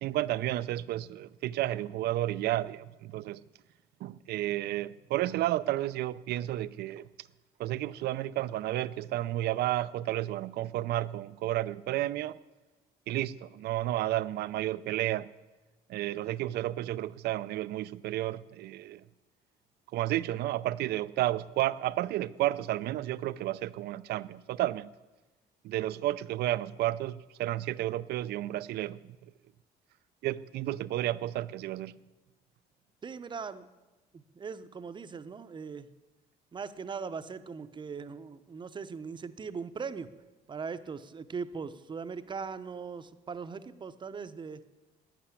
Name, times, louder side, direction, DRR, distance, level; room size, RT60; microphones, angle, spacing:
voice 1, 0.0-3.4 4.0-7.1 7.6-12.4 13.1-15.3 15.9-19.0 19.9-24.9 25.6-29.0 30.2-31.9, right 14 dB, 70° right, 0.5 m, -32 dB
voice 2, 33.0-33.7 34.1-35.9 36.5-40.1 40.5-44.6, right 5 dB, 25° right, 0.8 m, -40 dB
12.0 x 9.3 x 9.8 m
cardioid pair, 110°, 17 cm